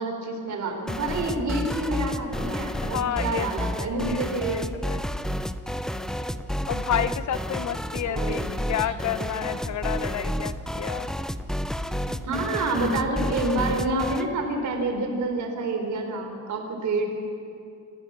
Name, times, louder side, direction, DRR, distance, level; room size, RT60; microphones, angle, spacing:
voice 1, 0.0-4.6 8.1-8.9 12.2-17.1, right 2 dB, 65° right, 4 dB, 4.1 m, -28 dB
sound 1, 0.9-14.3, equal, ahead, 0.6 m, -30 dB
voice 2, 2.8-4.2 4.5-5.0 6.7-8.4 8.7-11.1, left 10 dB, 65° left, 13 dB, 0.9 m, -30 dB
28.5 x 15.5 x 7.5 m, 2.7 s
cardioid pair, 150°, 31 cm